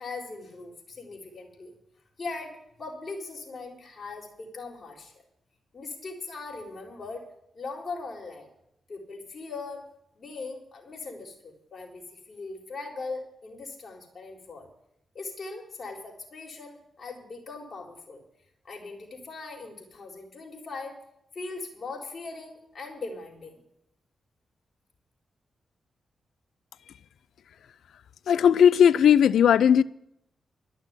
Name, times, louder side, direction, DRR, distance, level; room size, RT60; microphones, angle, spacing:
voice 1, 0.0-1.7 2.2-5.1 5.7-7.2 7.5-8.5 8.9-9.8 10.1-14.7 15.1-18.2 18.6-21.0 21.3-23.6, left 3 dB, 50° left, 4.1 m, -40 dB
voice 2, 28.3-29.8, left 8 dB, 80° left, 0.4 m, -17 dB
13.0 x 6.4 x 9.6 m
cardioid pair, 55°, 0 cm